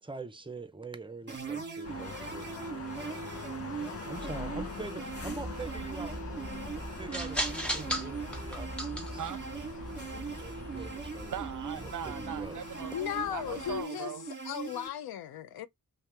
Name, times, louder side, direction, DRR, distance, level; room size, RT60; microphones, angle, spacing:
voice 1, 0.0-2.6 4.0-9.2 10.4-11.4 11.8-12.6, right 3 dB, 15° right, 0.6 m, -44 dB
sound 1, 1.3-14.9, right 5 dB, 30° right, 1.1 m, -41 dB
sound 2, 1.8-13.8, left 4 dB, 40° left, 0.8 m, -44 dB
sound 3, 5.1-12.5, right 1 dB, 5° left, 0.9 m, -39 dB
voice 2, 7.8-8.4 9.2-10.4 10.7-10.8 11.2-12.9 13.3-14.3, right 9 dB, 55° right, 0.6 m, -42 dB
voice 3, 12.8-14.1 14.4-15.7, left 10 dB, 80° left, 0.5 m, -36 dB
2.8 x 2.2 x 3.3 m
cardioid pair, 50°, 37 cm